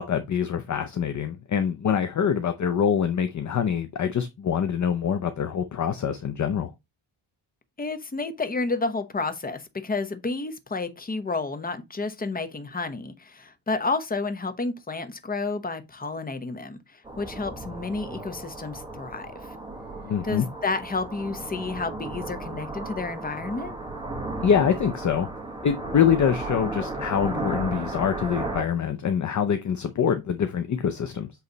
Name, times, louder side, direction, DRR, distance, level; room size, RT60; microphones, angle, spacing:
voice 1, 0.0-6.7 20.0-20.5 24.4-25.3 25.6-31.3, left 7 dB, 40° left, 0.6 m, -25 dB
voice 2, 7.8-19.6 20.2-23.7, left 3 dB, 20° left, 0.9 m, -31 dB
sound 1, 17.0-28.6, right 2 dB, 10° right, 1.2 m, -35 dB
8.1 x 3.2 x 4.0 m
wide cardioid pair, 155°, 48 cm